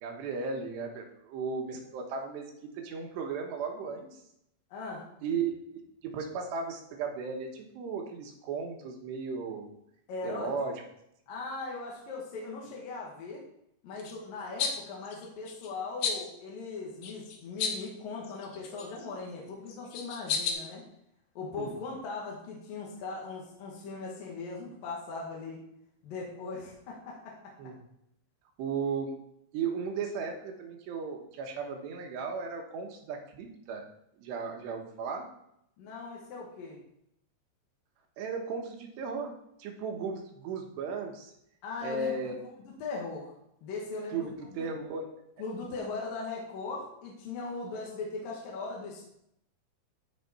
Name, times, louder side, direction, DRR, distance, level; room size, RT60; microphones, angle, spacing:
voice 1, 0.0-4.2 5.2-9.7 10.2-10.8 21.6-21.8 27.6-27.7 28.6-29.2 29.5-33.8 34.2-35.3 38.2-39.3 39.6-41.3 41.8-42.4 44.1-45.1, right 5 dB, 75° right, 2 dB, 3.3 m, -35 dB
voice 2, 4.7-5.1 10.1-10.5 11.3-13.4 13.8-20.8 21.4-25.6 26.0-27.5 35.8-36.8 41.6-42.3 42.6-43.3 43.6-44.7 45.4-49.1, left 3 dB, 60° left, -3 dB, 2.9 m, -39 dB
sound 1, 14.0-14.2 14.6-14.8 15.0-15.7 16.0-16.3 17.0-17.9 18.2-19.1 19.7-20.5, left 6 dB, 80° left, 1.9 m, -33 dB
13.0 x 5.1 x 4.3 m, 0.76 s
omnidirectional pair, 5.1 m